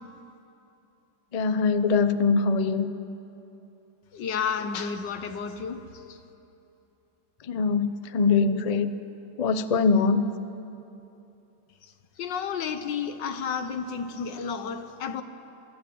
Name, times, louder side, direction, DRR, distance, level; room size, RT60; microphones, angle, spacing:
voice 1, 1.3-2.9 7.5-8.9 9.4-10.3, left 4 dB, 85° left, 11 dB, 0.3 m, -23 dB
voice 2, 4.1-5.8 12.2-15.2, left 6 dB, 70° left, 10 dB, 1.8 m, -31 dB
22.5 x 22.0 x 8.6 m, 2.9 s
omnidirectional pair, 2.0 m